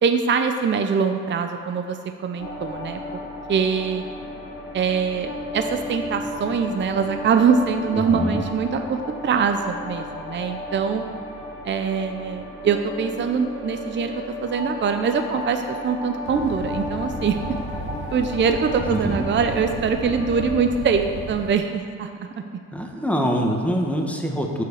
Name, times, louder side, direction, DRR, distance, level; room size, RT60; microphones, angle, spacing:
voice 1, 0.0-3.0 3.5-4.0 4.7-11.0 11.6-17.6 18.1-22.1, right 6 dB, 40° right, 6 dB, 0.6 m, -23 dB
sound 1, 2.4-21.5, left 1 dB, 30° left, 2.3 m, -34 dB
voice 2, 7.9-8.4 18.9-19.2 22.7-24.6, equal, 5° left, 1 dB, 1.5 m, -24 dB
Fire, 16.2-21.5, right 2 dB, 90° right, 2.2 m, -35 dB
8.1 x 7.7 x 6.5 m, 2.5 s
cardioid pair, 90°, 30 cm